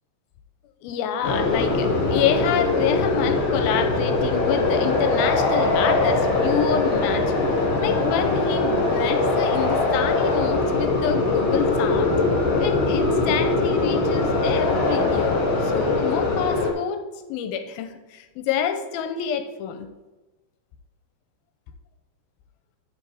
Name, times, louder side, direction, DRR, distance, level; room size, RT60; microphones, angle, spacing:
voice 1, 0.8-12.1 12.6-17.0 17.3-19.9, left 8 dB, 85° left, 8 dB, 2.4 m, -27 dB
sound 1, 1.2-16.7, left 3 dB, 65° left, 3.1 m, -22 dB
13.5 x 5.1 x 3.5 m, 1.2 s
omnidirectional pair, 4.3 m